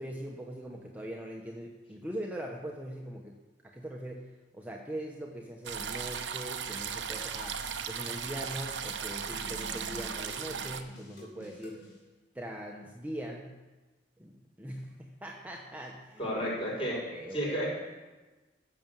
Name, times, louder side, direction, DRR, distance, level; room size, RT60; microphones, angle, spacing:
voice 1, 0.0-3.4 3.7-4.3 4.5-7.6 7.9-11.8 12.3-13.5 14.2-16.5 16.9-17.5, right 1 dB, 10° right, -1 dB, 1.0 m, -41 dB
sound 1, 5.7-10.8, right 7 dB, 80° right, 0.8 m, -37 dB
sound 2, 9.3-12.0, right 1 dB, 70° left, 3.6 m, -49 dB
voice 2, 16.2-17.0 17.3-17.7, equal, 30° left, -5 dB, 5.5 m, -31 dB
14.5 x 6.8 x 7.4 m, 1.2 s
head